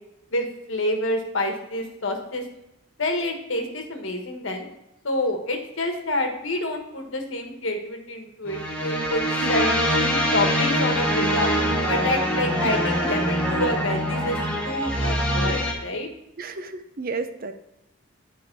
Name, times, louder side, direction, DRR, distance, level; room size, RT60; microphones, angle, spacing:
voice 1, 0.3-2.4 3.0-4.6 5.0-9.2 9.5-11.5 11.9-14.4 14.6-16.1, left 1 dB, 65° left, 4 dB, 1.4 m, -27 dB
sound 1, 8.5-15.7, equal, 5° left, 1.2 m, -24 dB
voice 2, 16.4-17.5, right 4 dB, 45° right, 9 dB, 0.6 m, -32 dB
9.6 x 4.9 x 4.5 m, 0.89 s
head